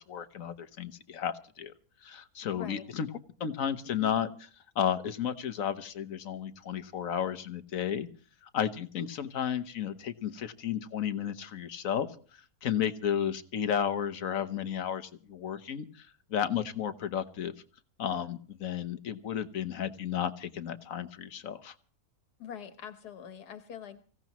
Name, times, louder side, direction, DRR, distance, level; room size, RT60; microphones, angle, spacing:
voice 1, 0.0-1.7 2.0-3.1 3.4-4.5 4.7-8.1 8.4-17.5 18.0-21.7, left 9 dB, 60° left, 10 dB, 1.3 m, -33 dB
voice 2, 2.5-2.9 22.4-24.0, left 8 dB, 90° left, 9 dB, 1.7 m, -44 dB
25.0 x 16.5 x 3.0 m, 0.41 s
omnidirectional pair, 1.6 m